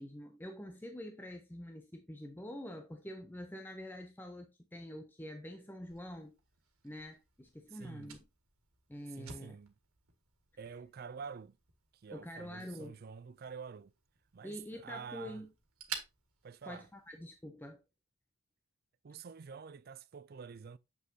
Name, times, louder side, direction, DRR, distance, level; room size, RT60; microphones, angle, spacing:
voice 1, 0.0-6.3 6.8-8.2 8.9-9.6 12.1-12.9 14.4-15.5 16.6-17.8, equal, 10° left, 0.6 m, -46 dB
Fire, 5.9-17.4, right 6 dB, 80° right, 1.8 m, -53 dB
voice 2, 7.7-8.1 9.2-9.7 10.6-11.6 11.9-13.9 14.3-15.4 16.4-16.9 19.0-20.8, right 6 dB, 45° right, 0.4 m, -48 dB
7.1 x 6.5 x 2.8 m
head